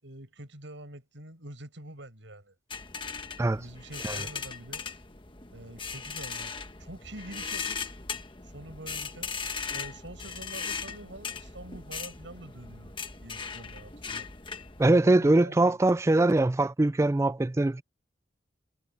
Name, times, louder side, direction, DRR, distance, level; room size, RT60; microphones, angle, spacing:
voice 1, 0.0-2.5 3.5-4.8 5.5-6.5 6.8-7.8 8.4-9.3 9.7-12.9 13.2-14.3 15.0-15.8, right 1 dB, 85° right, 6.6 m, -45 dB
sound 1, 2.7-14.9, left 5 dB, 25° left, 1.4 m, -38 dB
voice 2, 14.8-17.8, right 2 dB, 15° right, 0.3 m, -22 dB
head